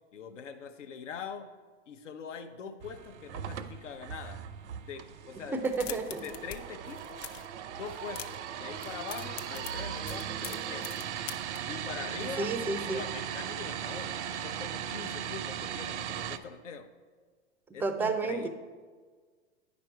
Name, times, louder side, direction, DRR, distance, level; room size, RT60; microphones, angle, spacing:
voice 1, 0.1-1.5 1.9-4.4 4.8-5.6 5.9-7.3 7.8-11.1 11.7-12.5 12.8-16.9 17.7-18.5, left 6 dB, 85° left, 8 dB, 0.8 m, -43 dB
sound 1, 2.8-16.4, right 9 dB, 75° right, 0.6 m, -38 dB
voice 2, 5.5-6.2 12.4-13.0 17.8-18.5, right 3 dB, 5° right, 8 dB, 0.3 m, -31 dB
sound 2, 5.6-6.6 6.8-7.5 7.9-8.5 8.8-11.6, left 11 dB, 50° left, 0.7 m, -43 dB
9.6 x 5.3 x 4.5 m, 1.5 s
hypercardioid pair, 115°, 36 cm